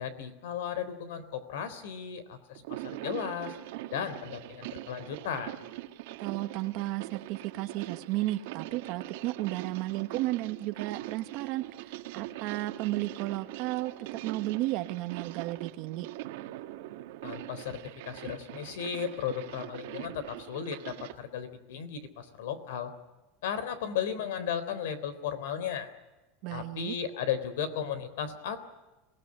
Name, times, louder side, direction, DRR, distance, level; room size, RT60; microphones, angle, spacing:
voice 1, 0.0-3.5 3.9-5.5 17.2-22.9 23.4-25.9 26.5-28.6, left 8 dB, 85° left, 14 dB, 3.5 m, -35 dB
sound 1, 2.5-21.2, right 16 dB, 70° right, 1.6 m, -42 dB
voice 2, 6.2-16.1 26.4-26.9, right 17 dB, 50° right, 9 dB, 1.1 m, -33 dB
27.0 x 19.0 x 9.8 m, 1.1 s
supercardioid pair, 165°, 0 cm